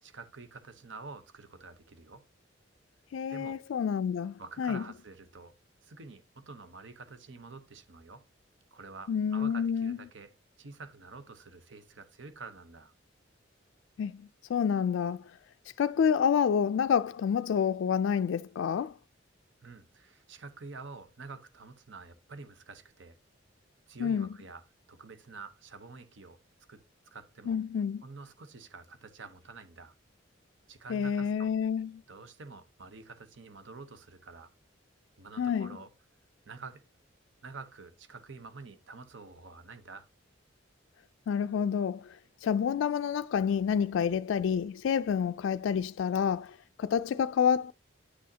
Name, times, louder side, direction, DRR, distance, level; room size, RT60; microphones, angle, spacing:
voice 1, 0.0-2.2 3.3-3.6 4.4-5.5 5.8-8.2 8.7-12.9 18.8-18.9 19.6-23.2 23.9-26.4 26.7-27.6 28.0-30.0 30.7-31.5 32.1-34.5 35.2-35.9 36.4-36.8 37.4-40.1, right 4 dB, 70° right, 0.9 m, -48 dB
voice 2, 3.1-4.8 9.1-10.0 14.0-14.2 14.5-15.3 15.8-18.9 24.0-24.3 27.5-28.0 30.9-31.9 35.4-35.7 41.3-47.7, left 7 dB, 75° left, 0.3 m, -28 dB
9.6 x 6.2 x 2.8 m
head